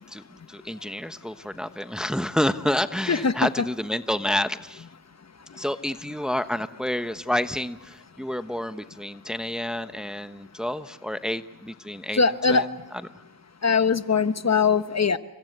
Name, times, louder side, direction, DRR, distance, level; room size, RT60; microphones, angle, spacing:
voice 1, 0.1-4.9 5.5-13.1, left 1 dB, ahead, 10 dB, 1.1 m, -29 dB
voice 2, 12.2-12.6 13.6-15.2, left 5 dB, 45° left, 11 dB, 1.2 m, -21 dB
29.0 x 25.0 x 8.1 m, 1.1 s
cardioid pair, 70°, 36 cm